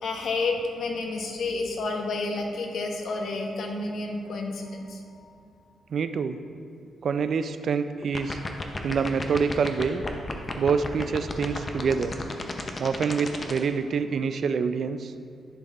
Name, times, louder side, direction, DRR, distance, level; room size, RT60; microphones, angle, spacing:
voice 1, 0.0-5.3, left 3 dB, 70° left, 2 dB, 1.0 m, -30 dB
voice 2, 5.9-6.4 7.0-8.4 8.8-10.0 10.6-12.1 12.8-15.1, right 6 dB, 60° right, 11 dB, 0.3 m, -26 dB
sound 1, 8.0-13.6, left 3 dB, 30° left, 0.6 m, -32 dB
10.5 x 4.2 x 4.0 m, 2.5 s
cardioid pair, 115°, 0 cm